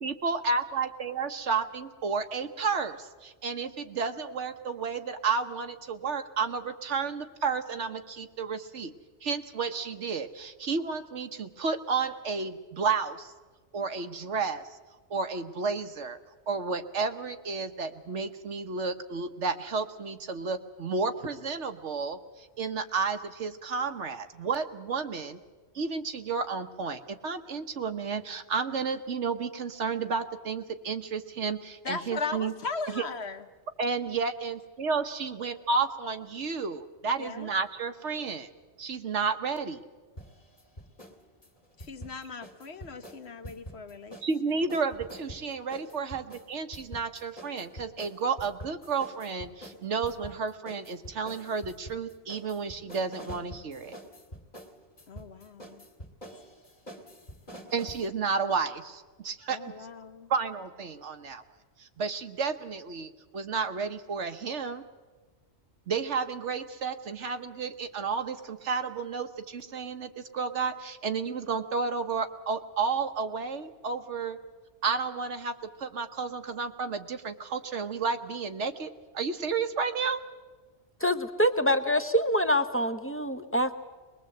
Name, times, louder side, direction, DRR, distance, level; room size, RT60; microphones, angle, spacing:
voice 1, 0.0-8.9 9.2-13.3 13.7-14.7 15.1-16.2 16.5-25.4 25.7-32.5 32.9-33.0 33.8-38.5 38.8-39.8 44.2-53.9 57.7-59.7 60.3-61.4 61.8-64.8 65.9-74.4 74.8-80.2, right 5 dB, 80° right, 8 dB, 1.4 m, -32 dB
voice 2, 31.8-33.4 37.2-37.5 41.8-44.2 55.1-55.8 59.5-60.3, left 4 dB, 65° left, 8 dB, 1.4 m, -38 dB
sound 1, 40.2-41.2 41.4-44.4 44.7-58.1, equal, 40° left, 2.4 m, -46 dB
voice 3, 81.0-83.8, equal, 10° left, 9 dB, 0.8 m, -25 dB
22.5 x 21.0 x 7.9 m, 1.3 s
omnidirectional pair, 1.2 m